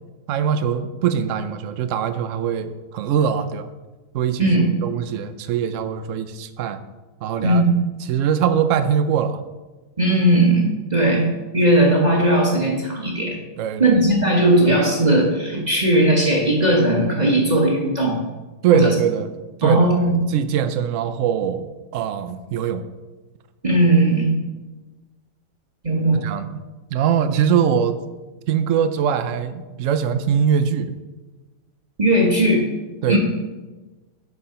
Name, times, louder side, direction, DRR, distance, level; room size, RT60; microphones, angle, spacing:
voice 1, 0.3-3.7 4.1-4.5 4.8-6.8 7.2-7.6 8.1-9.4 13.6-14.0 18.6-19.3 19.6-22.8 26.2-26.6 26.9-28.0 28.5-30.9 33.0-33.2, right 8 dB, 65° right, 11 dB, 0.8 m, -22 dB
voice 2, 10.0-11.3 11.5-13.4 13.8-18.2 18.7-18.9 19.6-20.2 23.6-24.4 25.8-26.2 32.0-32.7 33.1-33.2, right 1 dB, 25° right, -2 dB, 1.2 m, -17 dB
9.7 x 4.9 x 5.6 m, 1.2 s
omnidirectional pair, 1.9 m